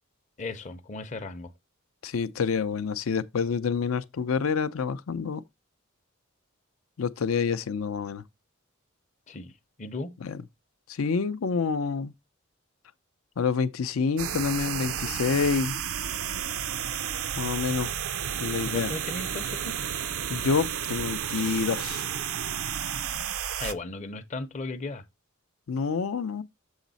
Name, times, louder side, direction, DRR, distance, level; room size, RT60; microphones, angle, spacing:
voice 1, 0.4-1.5 9.3-9.5 9.8-10.1 17.8-17.9 18.6-19.8 23.6-25.0, left 3 dB, 35° left, 0.6 m, -36 dB
voice 2, 2.0-5.4 7.0-8.2 10.2-10.4 10.9-12.1 13.4-15.8 17.4-17.9 18.4-18.9 20.3-22.0 25.7-26.4, left 5 dB, 75° left, 0.5 m, -27 dB
sound 1, 14.2-23.7, right 9 dB, 80° right, 0.5 m, -32 dB
7.2 x 4.0 x 4.0 m
head